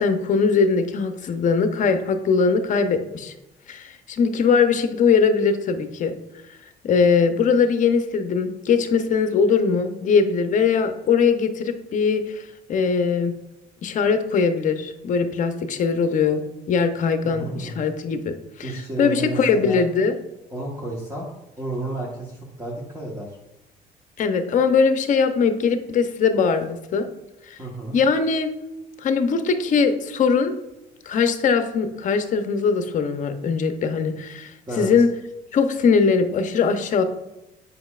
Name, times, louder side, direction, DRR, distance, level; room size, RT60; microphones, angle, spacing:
voice 1, 0.0-3.3 3.7-6.1 6.8-13.3 13.8-20.2 24.2-27.1 27.5-27.6 27.9-28.5 29.0-30.6 31.1-35.1 35.5-37.0, left 5 dB, 50° left, 8 dB, 0.7 m, -21 dB
voice 2, 17.2-17.8 18.6-19.8 20.5-21.3 21.6-23.3 27.6-28.0 34.7-34.9, right 2 dB, 20° right, -4 dB, 1.2 m, -31 dB
7.8 x 5.5 x 2.4 m, 0.92 s
cardioid pair, 110°, 17 cm